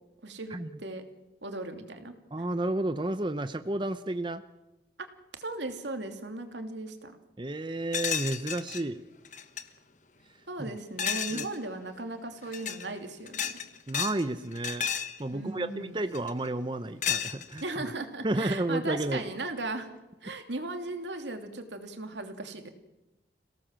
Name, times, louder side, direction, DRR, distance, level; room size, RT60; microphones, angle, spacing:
voice 1, 0.2-1.0 1.4-2.5 5.0-5.1 5.4-7.1 10.5-13.5 15.3-16.0 17.6-19.9 20.2-22.7, right 2 dB, 85° right, 6 dB, 2.8 m, -37 dB
voice 2, 2.3-4.4 7.4-9.0 10.6-10.7 11.3-11.5 13.9-14.9 15.2-17.6 18.2-19.2, right 1 dB, 25° right, 11 dB, 0.7 m, -31 dB
sound 1, 7.9-8.8 9.3-9.6 11.0-11.6 12.4-12.9 13.3-14.2 14.5-15.2 16.1-16.5 17.0-17.7, left 8 dB, 45° left, 1.3 m, -32 dB
27.5 x 17.5 x 7.6 m, 1.0 s
head